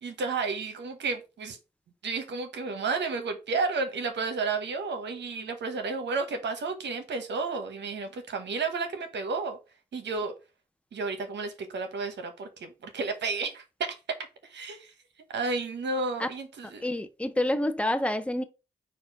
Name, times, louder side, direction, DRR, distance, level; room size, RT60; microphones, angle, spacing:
voice 1, 0.0-1.6 2.0-9.6 9.9-10.3 10.9-13.6 14.4-14.9 15.3-16.8, right 4 dB, 75° right, 0.9 m, -32 dB
voice 2, 16.8-18.4, left 1 dB, 5° left, 0.7 m, -28 dB
4.3 x 2.4 x 4.6 m
supercardioid pair, 45°, 19 cm